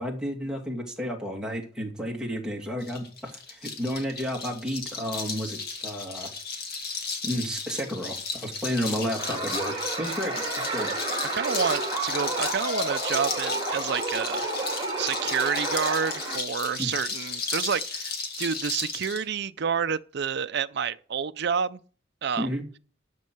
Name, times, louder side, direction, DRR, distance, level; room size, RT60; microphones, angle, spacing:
voice 1, 0.0-6.3 7.2-10.9 16.8-16.9 22.4-22.6, equal, 5° right, 2.4 m, -32 dB
sound 1, 2.8-19.2, left 4 dB, 55° left, 2.1 m, -34 dB
sound 2, 9.2-16.4, right 2 dB, 25° right, 3.5 m, -31 dB
voice 2, 11.3-14.4 15.0-21.8 22.2-22.5, right 6 dB, 60° right, 0.5 m, -29 dB
13.0 x 5.5 x 7.8 m
head